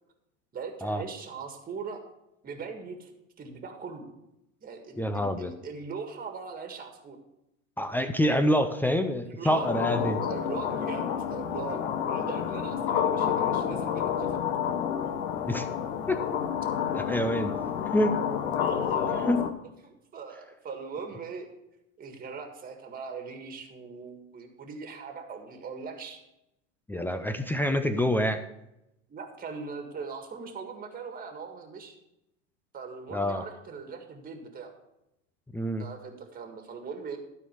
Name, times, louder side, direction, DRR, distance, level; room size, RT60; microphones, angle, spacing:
voice 1, 0.5-2.0 2.4-3.1 3.4-4.1 4.6-7.2 9.3-9.7 10.1-11.8 12.1-14.4 18.6-19.3 19.8-21.5 22.0-26.2 29.1-32.0 32.7-34.7 35.8-37.2, right 5 dB, 25° right, 5 dB, 1.8 m, -40 dB
voice 2, 5.0-5.5 7.8-10.2 15.5-15.7 16.1-16.2 16.9-17.5 17.9-18.2 19.3-19.5 26.9-28.4 33.1-33.4 35.5-35.9, equal, 5° left, 8 dB, 0.5 m, -26 dB
sound 1, 9.5-19.5, left 8 dB, 60° left, 1.2 m, -29 dB
12.5 x 4.6 x 6.6 m, 0.86 s
hypercardioid pair, 105°, 38 cm